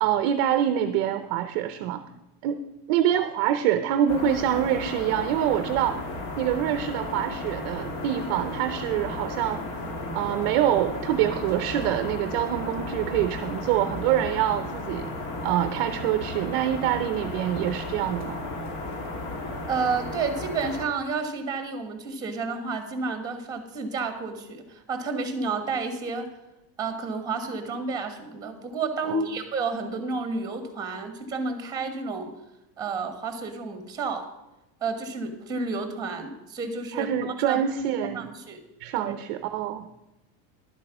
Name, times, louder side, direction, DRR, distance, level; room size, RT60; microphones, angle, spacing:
voice 1, 0.0-2.0 2.4-2.6 2.9-6.0 6.4-9.6 10.1-15.1 15.4-18.4 29.1-29.2 36.9-38.3 38.8-39.9, right 11 dB, 40° right, 9 dB, 0.5 m, -25 dB
sound 1, 4.1-20.8, left 2 dB, 60° left, 2.3 m, -34 dB
voice 2, 19.7-26.3 26.8-32.3 32.8-34.3 34.8-37.6 38.1-38.6 39.0-39.1, right 4 dB, 10° right, 7 dB, 1.3 m, -31 dB
11.5 x 7.6 x 5.9 m, 0.94 s
supercardioid pair, 175°, 46 cm